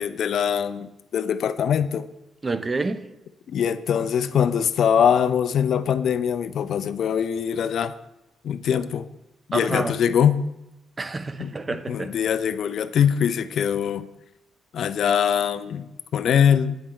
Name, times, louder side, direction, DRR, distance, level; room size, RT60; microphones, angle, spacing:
voice 1, 0.0-2.1 3.5-7.9 8.4-9.1 9.5-10.4 11.4-14.1 14.7-16.8, left 8 dB, 65° left, 0.3 m, -22 dB
voice 2, 2.4-3.1 9.5-10.0 11.0-12.2, right 3 dB, 25° right, 0.4 m, -28 dB
8.7 x 4.3 x 3.6 m
cardioid pair, 90°, 0 cm